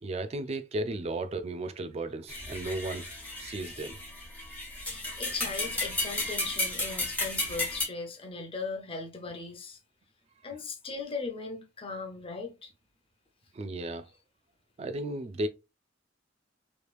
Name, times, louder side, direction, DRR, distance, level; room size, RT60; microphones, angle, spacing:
voice 1, 0.0-3.1 3.4-4.0 13.5-14.1 14.8-15.5, right 2 dB, 35° right, 0.3 m, -34 dB
sound 1, 2.3-7.8, left 2 dB, 10° left, 1.2 m, -33 dB
voice 2, 4.8-9.8 10.4-12.7, left 4 dB, 30° left, 0.7 m, -38 dB
3.3 x 3.0 x 2.4 m
head